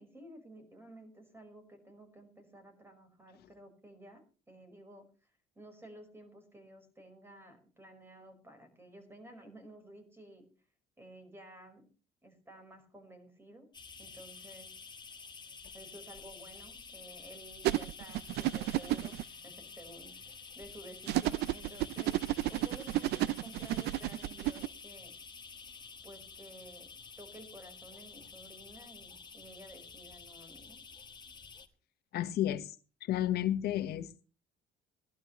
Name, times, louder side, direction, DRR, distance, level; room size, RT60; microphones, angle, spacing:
voice 1, 0.0-10.5 11.0-11.9 12.2-13.7 14.0-14.8 15.7-22.2 22.5-25.2 26.0-26.9 27.2-30.9, right 1 dB, 15° right, 6 dB, 5.0 m, -53 dB
sound 1, 13.7-31.7, left 5 dB, 25° left, 1.5 m, -50 dB
sound 2, 17.6-19.2 21.1-24.7, right 15 dB, 75° right, 0.5 m, -32 dB
voice 2, 32.1-34.2, left 12 dB, 70° left, 10 dB, 1.4 m, -32 dB
19.5 x 11.5 x 3.2 m, 0.34 s
cardioid pair, 110°, 17 cm